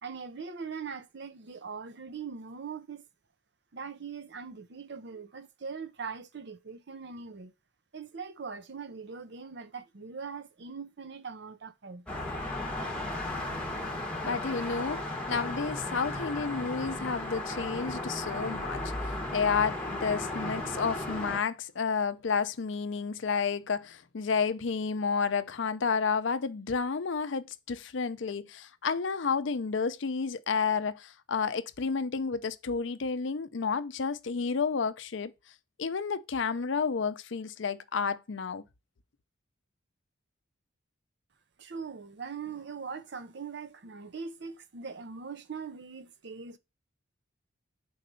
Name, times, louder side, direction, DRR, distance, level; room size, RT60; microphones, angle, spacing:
voice 1, 0.0-3.1 3.7-7.5 7.9-12.2 41.6-46.6, right 5 dB, 60° right, 0.6 m, -41 dB
sound 1, 12.1-21.4, left 1 dB, 5° left, 1.2 m, -35 dB
voice 2, 14.2-15.0 15.3-35.3 35.8-38.6, left 5 dB, 65° left, 0.5 m, -31 dB
4.7 x 4.2 x 5.3 m
head